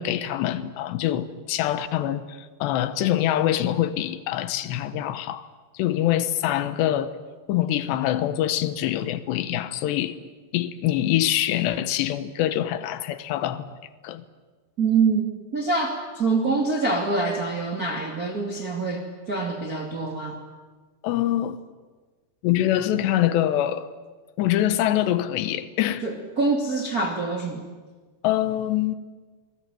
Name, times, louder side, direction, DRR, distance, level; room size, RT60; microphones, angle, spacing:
voice 1, 0.0-5.5 5.7-7.2 7.5-10.2 10.5-13.7 14.0-14.2 21.0-21.6 22.4-23.9 24.4-26.0 28.2-29.0, left 12 dB, 85° left, 3.3 m, -24 dB
voice 2, 14.8-20.4 26.0-27.6, right 4 dB, 25° right, 2.2 m, -25 dB
28.5 x 20.0 x 9.2 m
omnidirectional pair, 4.9 m